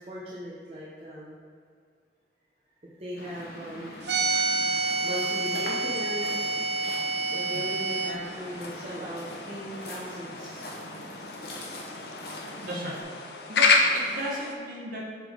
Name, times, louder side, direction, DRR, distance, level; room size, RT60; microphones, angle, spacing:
voice 1, 0.0-1.3 2.8-3.9 5.0-6.5 7.2-10.7, equal, 35° right, -7 dB, 0.7 m, -38 dB
Waves surf, 3.2-13.0, left 1 dB, 60° left, 1.1 m, -42 dB
sound 1, 4.0-8.1, right 3 dB, 75° right, 0.7 m, -28 dB
sound 2, 8.2-14.6, left 3 dB, 75° left, 0.6 m, -29 dB
voice 2, 12.6-13.0 13.5-15.2, equal, 50° right, -4 dB, 1.3 m, -35 dB
8.3 x 3.7 x 3.6 m, 2.2 s
head